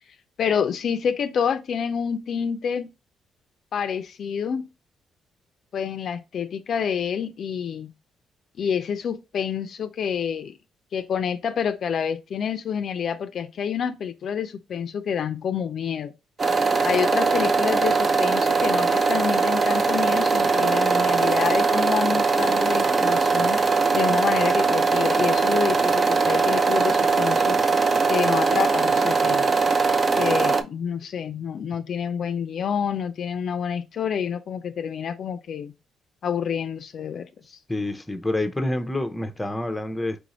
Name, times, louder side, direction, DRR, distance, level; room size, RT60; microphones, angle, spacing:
voice 1, 0.4-2.9 3.7-4.7 5.7-7.9 8.6-10.6 10.9-16.1 16.8-27.7 28.1-29.5 30.2-35.7 36.2-37.6, left 7 dB, 60° left, 0.4 m, -28 dB
sound 1, 16.4-30.6, right 4 dB, 35° right, 0.6 m, -21 dB
voice 2, 37.7-40.2, left 1 dB, 10° left, 0.6 m, -27 dB
4.9 x 2.6 x 3.0 m
cardioid pair, 90°, 0 cm